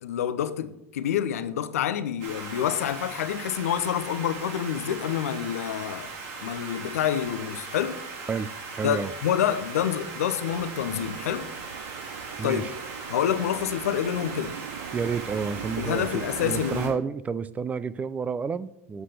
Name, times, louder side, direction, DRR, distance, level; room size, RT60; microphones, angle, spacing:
voice 1, 0.0-6.1 6.4-8.0 8.8-11.5 12.4-12.6 13.1-14.6 15.8-16.9, left 9 dB, 85° left, 0.7 m, -27 dB
sound 1, 2.2-16.9, right 4 dB, 55° right, 2.8 m, -39 dB
voice 2, 8.3-9.1 12.4-12.7 14.9-19.0, right 5 dB, 20° right, 0.5 m, -30 dB
sound 2, 10.5-17.0, right 10 dB, 80° right, 0.5 m, -41 dB
8.1 x 5.8 x 6.7 m
hypercardioid pair, 105°, 8 cm